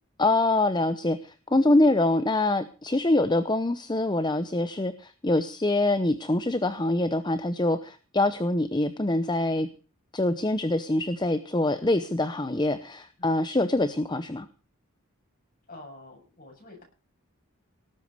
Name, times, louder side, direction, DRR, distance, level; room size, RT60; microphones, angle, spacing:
voice 1, 0.2-9.7 10.1-14.5, left 2 dB, 20° left, 11 dB, 0.8 m, -25 dB
voice 2, 13.2-13.5 15.7-16.8, left 2 dB, 40° left, 1 dB, 8.0 m, -47 dB
18.5 x 8.4 x 6.7 m, 0.36 s
head